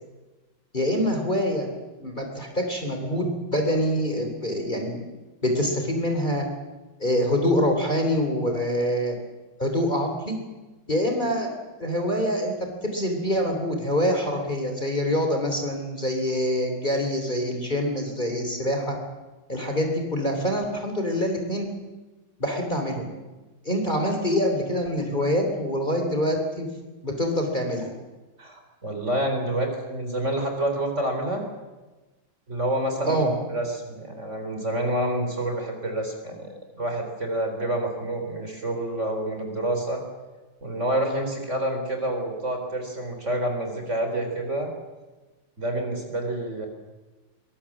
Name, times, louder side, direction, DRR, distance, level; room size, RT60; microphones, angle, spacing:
voice 1, 0.7-1.7 2.0-5.0 5.4-6.5 7.0-9.2 9.6-10.4 10.9-11.5 11.8-19.0 19.5-21.7 22.4-23.1 23.7-26.7 27.0-27.9 33.0-33.3, equal, 20° left, 3 dB, 3.6 m, -25 dB
voice 2, 28.4-31.4 32.5-36.5 36.8-40.0 40.6-44.7 45.6-46.7, right 1 dB, 35° right, 4 dB, 4.2 m, -28 dB
23.5 x 22.0 x 7.4 m, 1.2 s
omnidirectional pair, 2.2 m